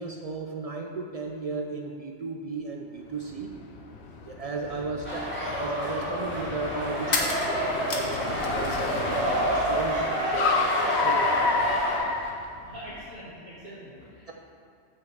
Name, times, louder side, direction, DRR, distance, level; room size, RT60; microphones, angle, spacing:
voice 1, 0.0-3.5 4.1-11.7 14.3-14.4, right 3 dB, 75° right, 2 dB, 0.3 m, -35 dB
Car, 3.1-13.0, left 4 dB, 60° left, 1.0 m, -31 dB
sound 1, 4.8-4.9 7.0-9.0 9.3-10.2, left 2 dB, 40° left, 0.9 m, -32 dB
sound 2, 5.0-12.0, equal, 10° left, 2.1 m, -28 dB
voice 2, 12.6-14.3, equal, 45° right, -12 dB, 2.1 m, -43 dB
6.3 x 5.6 x 7.1 m, 2.5 s
omnidirectional pair, 1.3 m